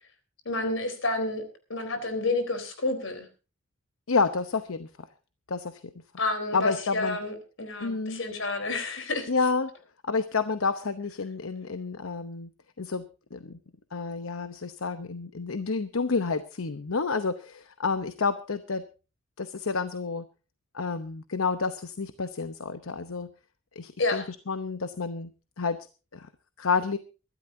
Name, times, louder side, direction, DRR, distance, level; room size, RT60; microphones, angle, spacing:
voice 1, 0.5-1.4 1.7-3.3 6.2-9.3 24.0-24.3, left 2 dB, 70° left, 8 dB, 3.9 m, -29 dB
voice 2, 4.1-4.9 5.5-5.8 6.5-7.2 7.8-8.2 9.3-9.7 10.0-12.5 12.8-13.1 13.3-13.6 13.9-18.8 19.4-20.3 20.7-23.3 23.8-25.3 25.6-25.8 26.1-26.3 26.6-27.0, left 4 dB, 90° left, 11 dB, 0.9 m, -29 dB
24.0 x 12.5 x 2.7 m, 0.33 s
head